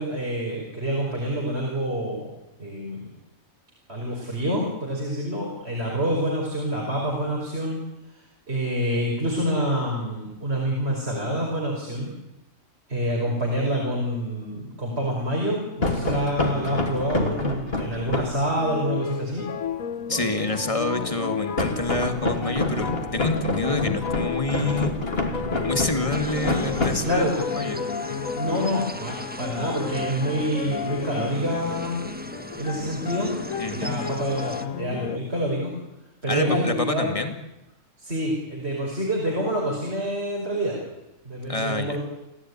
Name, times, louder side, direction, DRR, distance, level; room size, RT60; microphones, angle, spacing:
voice 1, 0.0-2.3 2.6-3.1 3.9-7.8 8.1-12.1 12.9-19.5 27.0-27.4 28.4-32.0 32.6-33.4 33.7-35.7 36.2-37.1 38.0-40.8 41.2-42.0, equal, 50° right, -1 dB, 5.7 m, -27 dB
sound 1, 15.8-18.5 21.6-27.5, left 2 dB, 45° left, 3.3 m, -27 dB
sound 2, 18.6-35.2, left 6 dB, 80° left, 1.7 m, -33 dB
voice 2, 20.1-25.0 25.6-27.8 33.6-33.9 36.3-37.3 41.5-42.0, left 2 dB, 25° left, 6 dB, 2.5 m, -27 dB
sound 3, 26.1-34.7, equal, 5° right, 1.1 m, -37 dB
30.0 x 16.0 x 9.8 m, 0.95 s
omnidirectional pair, 1.4 m